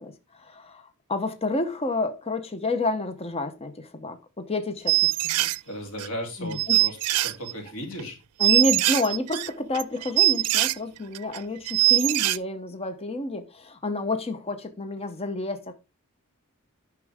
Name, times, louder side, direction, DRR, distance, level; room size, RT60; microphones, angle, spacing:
voice 1, 0.0-5.5 6.4-6.8 8.4-15.7, left 2 dB, 25° left, 0.8 m, -29 dB
sound 1, 4.9-5.6 6.0-6.1 6.5-7.7 8.0-8.1 8.4-10.7 11.1-11.4 11.7-12.4, right 17 dB, 90° right, 0.4 m, -22 dB
voice 2, 5.6-7.0 7.2-8.2, equal, 70° left, 3.1 m, -35 dB
9.8 x 6.1 x 3.5 m
head